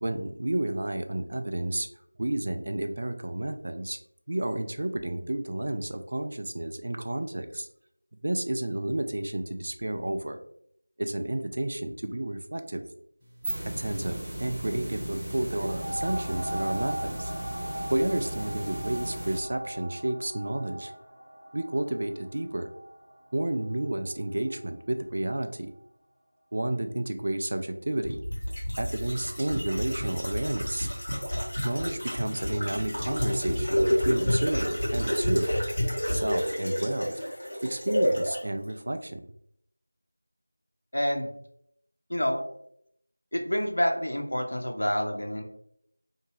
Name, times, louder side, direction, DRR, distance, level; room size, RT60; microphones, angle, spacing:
voice 1, 0.0-1.9 2.2-4.0 4.3-7.7 8.2-10.4 11.0-12.8 13.8-17.3 17.9-20.9 21.5-22.7 23.3-25.7 26.5-28.2 28.8-30.9 31.6-35.5 36.1-37.1 37.6-39.2, right 1 dB, 50° right, 7 dB, 0.3 m, -31 dB
sound 1, 13.2-19.4, right 1 dB, 5° right, 0.9 m, -36 dB
sound 2, 15.5-24.8 25.4-25.5, right 1 dB, 85° right, 0.7 m, -39 dB
sound 3, 28.0-38.4 38.7-38.8, equal, 45° left, 1.1 m, -29 dB
voice 2, 40.9-41.3 42.1-42.4 43.3-45.4, equal, 70° left, 3 dB, 0.5 m, -28 dB
2.6 x 2.3 x 3.0 m, 0.71 s
figure-of-eight pair, 175°, 0 cm